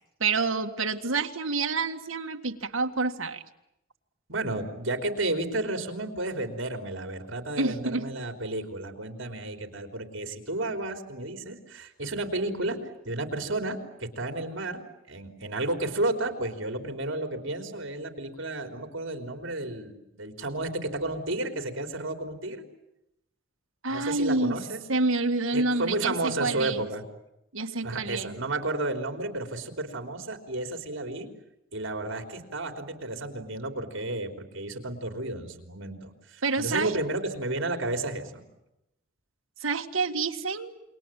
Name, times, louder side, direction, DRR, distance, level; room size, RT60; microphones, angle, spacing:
voice 1, 0.2-3.4 7.6-8.1 23.8-24.6 24.9-26.9 27.5-28.4 36.4-37.0 39.6-40.7, right 3 dB, 90° right, 5 dB, 1.8 m, -28 dB
voice 2, 4.3-12.8 13.0-14.8 15.1-22.6 23.9-24.8 25.5-27.0 27.8-31.3 31.7-38.4, right 2 dB, 70° right, 6 dB, 3.9 m, -32 dB
28.0 x 23.0 x 9.0 m, 0.86 s
head